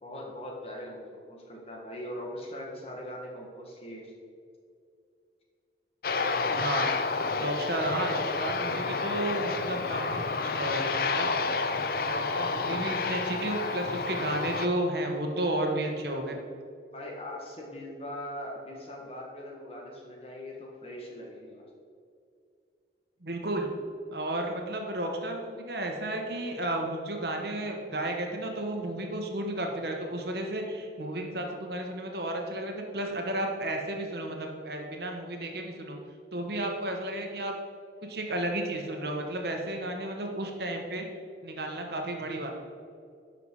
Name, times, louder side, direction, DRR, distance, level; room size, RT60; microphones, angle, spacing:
voice 1, 0.0-4.1 16.9-21.7, left 1 dB, 35° left, -2 dB, 1.8 m, -41 dB
Aircraft, 6.0-14.7, left 4 dB, 55° left, 0.5 m, -30 dB
voice 2, 6.6-6.9 7.4-11.3 11.7-16.4 23.2-23.7 24.1-36.0 36.3-37.5 38.1-41.0 41.4-42.5, right 1 dB, 60° right, 2 dB, 1.3 m, -33 dB
11.0 x 5.9 x 4.8 m, 2.3 s
head